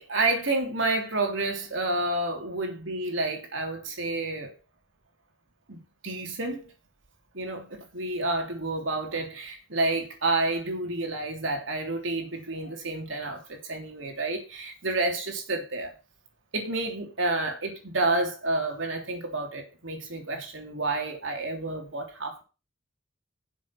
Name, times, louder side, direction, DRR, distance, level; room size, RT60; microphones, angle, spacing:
voice 1, 0.0-4.5 5.7-6.7 7.3-15.9 16.5-22.4, right 2 dB, 75° right, 3.2 m, -29 dB
7.2 x 6.2 x 7.4 m
head